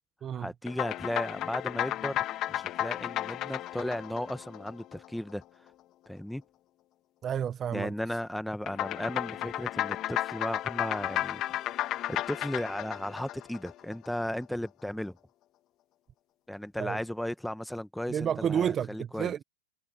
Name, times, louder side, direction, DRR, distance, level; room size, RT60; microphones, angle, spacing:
voice 1, 0.3-5.4 6.1-6.4 7.7-11.4 11.7-15.2 16.5-19.3, left 1 dB, ahead, 1.2 m, -35 dB
sound 1, 0.7-5.3 8.7-14.1, left 14 dB, 35° left, 1.6 m, -33 dB
voice 2, 7.2-7.9 16.8-17.0 18.1-19.4, right 9 dB, 25° right, 0.8 m, -30 dB
hypercardioid pair, 120°, 0 cm